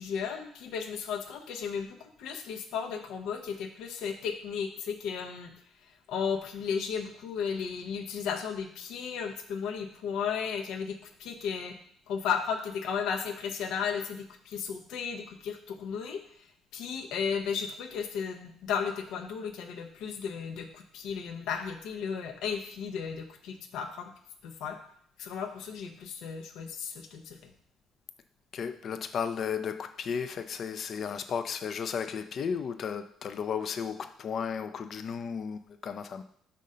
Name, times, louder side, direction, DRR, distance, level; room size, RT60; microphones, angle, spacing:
voice 1, 0.0-5.5 6.1-11.7 12.1-16.2 16.7-24.1 24.4-24.8 25.2-27.4, left 6 dB, 85° left, 4 dB, 0.7 m, -34 dB
voice 2, 28.5-36.2, left 7 dB, 55° left, 9 dB, 0.4 m, -34 dB
5.3 x 3.8 x 5.5 m, 0.64 s
cardioid pair, 105°, 0 cm